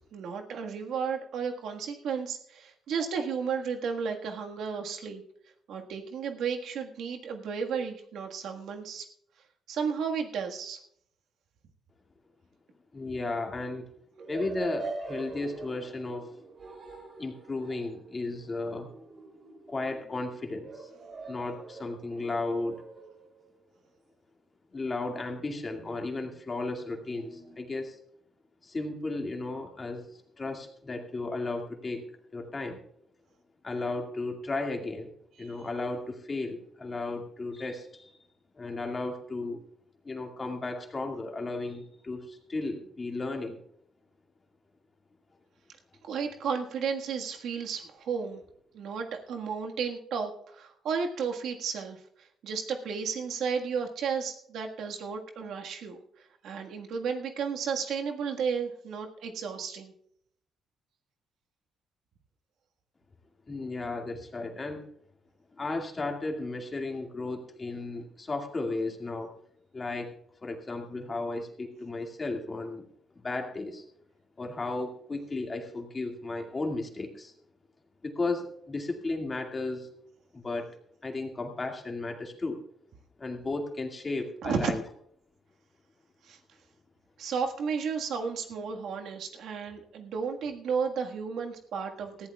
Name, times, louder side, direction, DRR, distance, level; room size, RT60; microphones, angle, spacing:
voice 1, 0.1-5.2 5.7-9.1 9.7-10.8 35.4-35.6 46.0-48.4 48.7-59.9 84.4-84.8 86.2-86.4 87.2-92.3, right 6 dB, 75° right, 3 dB, 1.6 m, -33 dB
voice 2, 12.9-13.9 14.3-16.3 17.2-18.9 19.7-20.9 21.3-22.8 24.7-28.0 28.6-30.1 30.4-32.0 32.3-32.8 33.6-35.1 35.4-38.1 38.6-39.6 40.0-43.6 63.5-64.9 65.5-69.3 69.7-70.1 70.4-72.8 73.2-73.8 74.4-77.3 78.0-79.9 80.3-80.7 81.0-82.6 83.2-84.8, left 2 dB, 25° left, 3 dB, 2.1 m, -34 dB
sound 1, 14.2-23.6 25.4-27.8, right 3 dB, 40° right, 3.0 m, -45 dB
19.5 x 14.5 x 2.4 m, 0.68 s
cardioid pair, 125°, 0 cm